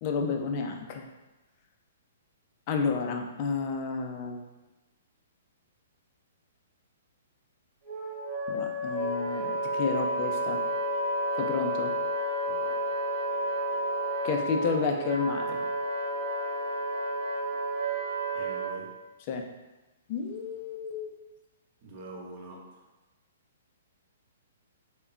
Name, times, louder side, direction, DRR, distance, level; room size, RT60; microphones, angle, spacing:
voice 1, 0.0-1.0 2.7-4.4 8.5-10.6 11.4-11.9 14.2-15.6 19.3-19.4 20.1-21.1, left 5 dB, 40° left, 3 dB, 0.4 m, -31 dB
Wind instrument woodwind instrument, 7.8-18.7, right 1 dB, 25° right, 1.2 m, -31 dB
voice 2, 12.5-12.8 18.3-18.9 21.8-22.8, right 2 dB, 40° right, -2 dB, 0.7 m, -45 dB
3.4 x 2.1 x 2.4 m, 1.1 s
hypercardioid pair, 125°, 0 cm